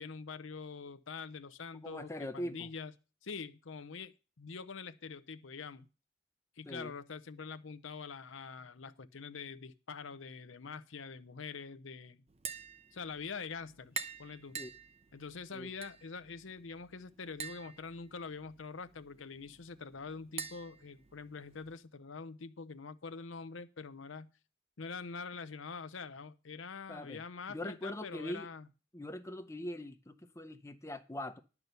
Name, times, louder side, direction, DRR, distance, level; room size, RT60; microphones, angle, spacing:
voice 1, 0.0-2.9 3.2-5.9 6.6-12.2 12.9-14.6 15.1-24.3 24.8-28.7, left 5 dB, 70° left, 0.7 m, -45 dB
voice 2, 1.8-2.7 6.7-7.0 14.6-14.7 15.5-15.7 26.9-27.2 27.5-28.5 28.9-31.4, left 1 dB, 15° left, 0.7 m, -42 dB
Tap, 12.3-21.8, right 6 dB, 30° right, 0.7 m, -48 dB
11.0 x 5.9 x 6.8 m
head